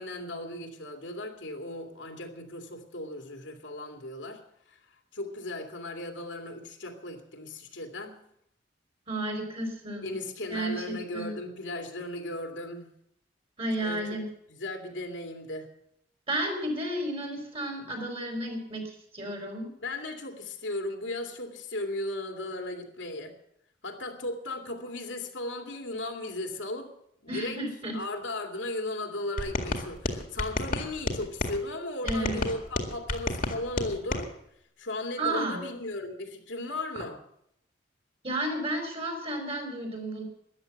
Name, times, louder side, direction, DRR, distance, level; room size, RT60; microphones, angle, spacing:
voice 1, 0.0-4.4 4.7-4.8 5.1-8.2 10.0-12.9 13.8-14.2 14.6-15.7 19.8-23.3 23.8-26.9 27.2-27.6 27.9-34.3 34.8-37.2, left 2 dB, 80° left, 3 dB, 2.5 m, -36 dB
voice 2, 9.1-10.1 10.5-11.3 13.6-14.3 16.3-19.7 27.3-28.0 32.0-32.5 35.2-35.6 38.2-40.2, right 1 dB, 30° right, 3 dB, 4.3 m, -32 dB
sound 1, 29.4-31.6 32.1-34.2, left 2 dB, 50° left, 2.0 m, -31 dB
13.5 x 10.5 x 7.8 m, 0.74 s
head